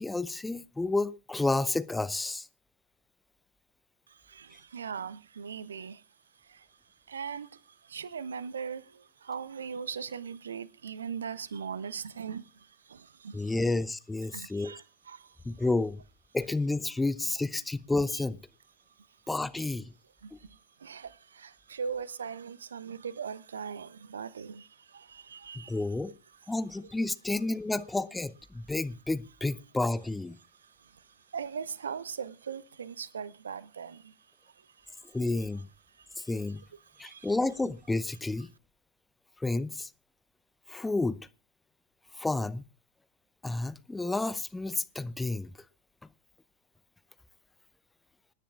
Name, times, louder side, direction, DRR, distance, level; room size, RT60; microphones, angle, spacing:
voice 1, 0.0-2.5 13.3-14.7 15.4-16.0 16.3-18.4 19.3-19.9 25.6-26.1 26.5-30.4 35.1-35.7 36.2-36.6 37.0-38.5 39.4-39.9 40.7-41.2 42.2-42.6 43.4-45.5, left 2 dB, 10° left, 0.6 m, -30 dB
voice 2, 4.1-6.0 6.4-6.8 7.1-13.7 14.3-15.4 18.1-18.2 19.0-19.1 20.2-26.1 27.8-27.9 30.5-34.1 34.4-35.2 35.9-36.3 36.8-37.3, right 6 dB, 70° right, 0.6 m, -40 dB
27.0 x 10.0 x 2.4 m
figure-of-eight pair, 90°, 0 cm